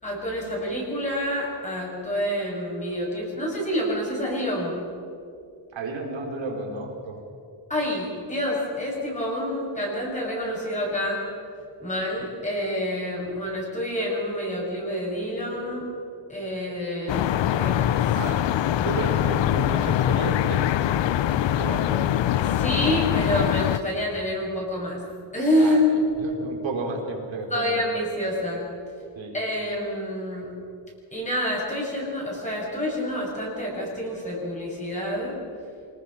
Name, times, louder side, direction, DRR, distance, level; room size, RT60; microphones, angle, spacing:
voice 1, 0.0-4.8 7.7-11.2 11.8-15.9 16.3-18.0 22.4-25.0 25.3-25.9 27.5-28.6 29.3-30.5 31.1-35.3, left 1 dB, 15° left, -3 dB, 7.2 m, -27 dB
voice 2, 5.7-7.2 18.1-18.4 18.8-20.7 21.6-21.9 25.6-25.8 26.2-27.8 29.2-29.3, right 2 dB, 75° right, 1 dB, 4.5 m, -32 dB
sound 1, 17.1-23.8, left 11 dB, 70° left, 0.8 m, -23 dB
26.5 x 19.5 x 5.9 m, 2.4 s
cardioid pair, 130°, 46 cm